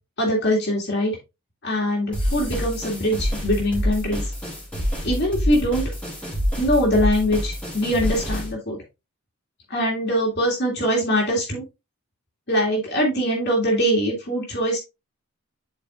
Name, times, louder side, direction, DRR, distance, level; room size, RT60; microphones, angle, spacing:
voice 1, 0.2-1.1 1.6-4.2 5.0-5.9 6.6-8.8 9.7-11.6 12.5-14.8, equal, 50° left, -2 dB, 2.1 m, -22 dB
sound 1, 2.1-8.5, equal, 5° left, 3.2 m, -27 dB
10.5 x 4.5 x 2.4 m, 0.25 s
head